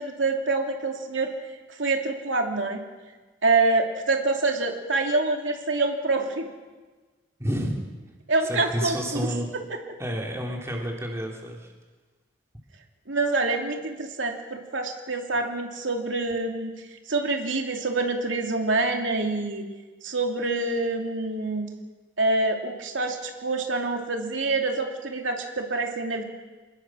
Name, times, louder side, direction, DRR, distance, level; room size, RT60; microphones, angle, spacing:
voice 1, 0.0-1.3 1.8-2.8 3.4-6.5 8.3-9.3 9.7-9.8 13.1-16.7 17.1-19.6 20.0-21.7 22.2-26.2, right 3 dB, 80° right, 2 dB, 2.7 m, -26 dB
voice 2, 7.4-7.8 8.4-9.5 10.0-11.7, equal, 15° right, 0 dB, 3.4 m, -30 dB
27.5 x 20.0 x 6.3 m, 1.3 s
head